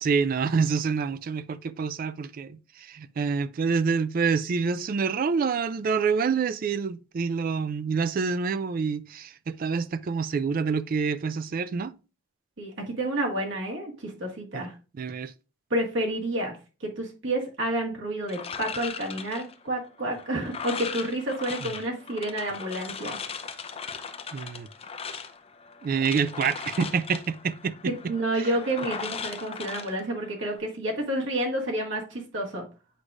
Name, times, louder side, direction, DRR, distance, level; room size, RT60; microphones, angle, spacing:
voice 1, 0.0-11.9 14.5-14.6 15.0-15.3 21.6-21.7 24.3-24.7 25.8-28.1, right 5 dB, 45° right, 0.3 m, -27 dB
voice 2, 12.6-14.7 15.7-23.2 27.9-32.6, right 1 dB, 75° right, 1.8 m, -30 dB
sound 1, 18.3-30.6, left 5 dB, 30° left, 0.5 m, -38 dB
8.0 x 4.8 x 2.5 m
head